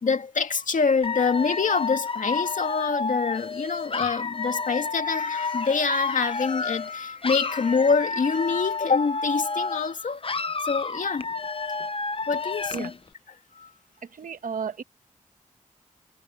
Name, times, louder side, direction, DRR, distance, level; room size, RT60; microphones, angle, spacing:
voice 1, 0.0-10.2 10.6-11.3 12.3-12.9 13.6-13.7, left 5 dB, 70° left, 2.4 m, -25 dB
Dog / Alarm, 1.0-6.9 7.2-9.9 10.2-13.0, left 4 dB, 40° left, 0.9 m, -30 dB
voice 2, 14.0-14.8, right 6 dB, 80° right, 1.5 m, -33 dB
cardioid pair, 50°, 14 cm